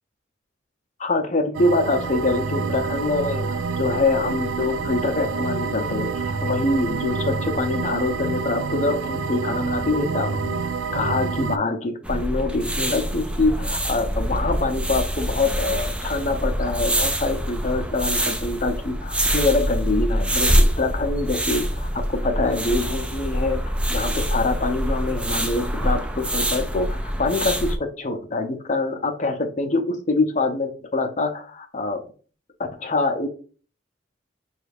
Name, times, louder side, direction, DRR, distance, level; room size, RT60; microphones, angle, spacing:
voice 1, 1.0-10.6 10.9-32.0 32.7-33.3, left 3 dB, 40° left, 6 dB, 0.6 m, -25 dB
sound 1, 1.5-11.6, right 4 dB, 85° right, 0.4 m, -27 dB
sound 2, 12.0-27.8, equal, 5° right, 0.4 m, -25 dB
5.2 x 2.4 x 3.4 m, 0.40 s
head